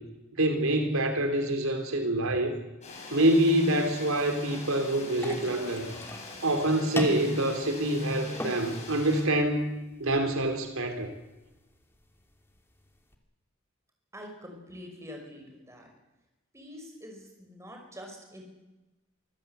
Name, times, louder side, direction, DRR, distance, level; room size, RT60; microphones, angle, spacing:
voice 1, 0.4-2.5 3.1-5.9 6.4-9.7 10.0-11.1, right 1 dB, 85° right, 6 dB, 3.4 m, -26 dB
sound 1, 2.8-9.2, left 3 dB, 35° left, 6.7 m, -43 dB
sound 2, 5.1-13.2, left 1 dB, 10° left, 2.6 m, -42 dB
voice 2, 14.1-15.9 16.5-18.4, equal, 15° right, 2 dB, 5.8 m, -45 dB
25.5 x 15.5 x 8.1 m, 1.0 s
head